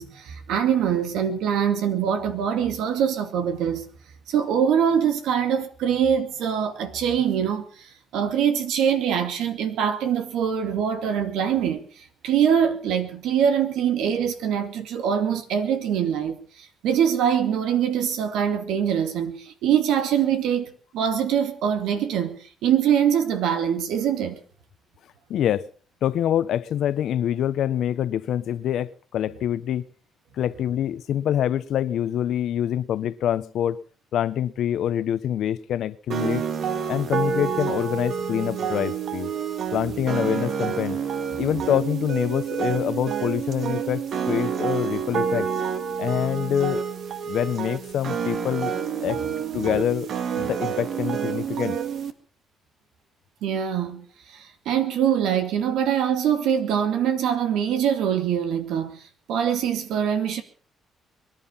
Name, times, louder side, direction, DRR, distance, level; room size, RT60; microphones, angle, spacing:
voice 1, 0.0-3.8 4.3-11.8 12.2-22.4 22.6-24.4 53.4-59.0 59.3-60.4, right 8 dB, 85° right, 2.5 m, -23 dB
voice 2, 25.3-25.7 26.0-29.8 30.4-33.8 34.1-36.4 36.9-39.3 39.7-41.0 41.4-45.5 46.0-46.8 47.3-48.7 49.0-49.2 49.5-51.8, left 10 dB, 75° left, 1.0 m, -25 dB
sound 1, 36.1-52.1, right 7 dB, 65° right, 1.9 m, -28 dB
23.0 x 11.0 x 5.7 m
cardioid pair, 90°, 0 cm